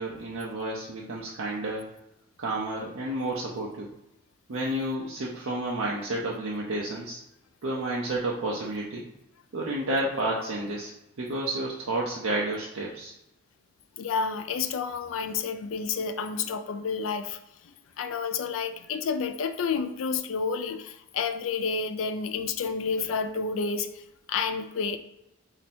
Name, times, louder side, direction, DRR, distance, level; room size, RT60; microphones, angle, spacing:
voice 1, 0.0-1.9 2.4-3.9 4.5-7.2 7.6-9.0 9.5-10.9 11.2-13.1, right 1 dB, 80° right, -4 dB, 0.6 m, -30 dB
voice 2, 14.0-17.4 17.7-23.9 24.3-25.0, left 5 dB, 70° left, 8 dB, 0.4 m, -30 dB
3.3 x 2.8 x 4.3 m, 0.87 s
head